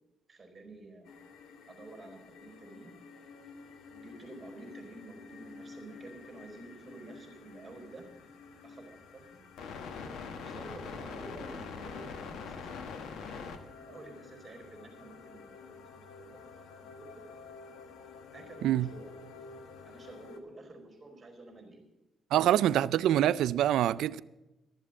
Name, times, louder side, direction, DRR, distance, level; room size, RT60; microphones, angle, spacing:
voice 1, 0.3-1.2 1.7-3.0 3.9-8.1 8.6-9.4 10.3-13.5 13.8-15.9 16.2-17.2 18.3-19.1 19.8-21.9, right 2 dB, 25° right, 4.4 m, -50 dB
sound 1, 1.1-20.4, left 5 dB, 75° left, 1.3 m, -47 dB
voice 2, 22.3-24.2, right 12 dB, 80° right, 0.4 m, -25 dB
13.0 x 7.4 x 8.8 m
cardioid pair, 90°, 0 cm